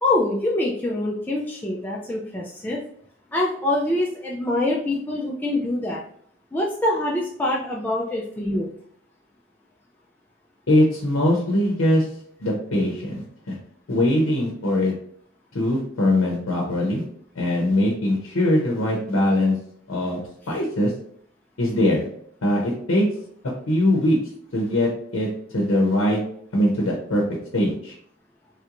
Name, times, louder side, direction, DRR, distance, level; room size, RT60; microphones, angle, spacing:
voice 1, 0.0-2.8 3.3-6.0 6.5-8.7, left 1 dB, 10° left, -4 dB, 0.3 m, -25 dB
voice 2, 10.7-12.1 12.4-13.6 13.9-14.9 15.5-17.0 17.3-19.5 19.9-20.9 21.6-22.0 22.4-23.1 23.7-24.2 24.5-25.3 25.5-26.2 26.5-27.2 27.5-27.9, left 1 dB, 80° left, -1 dB, 0.7 m, -21 dB
3.2 x 2.5 x 2.9 m, 0.64 s
head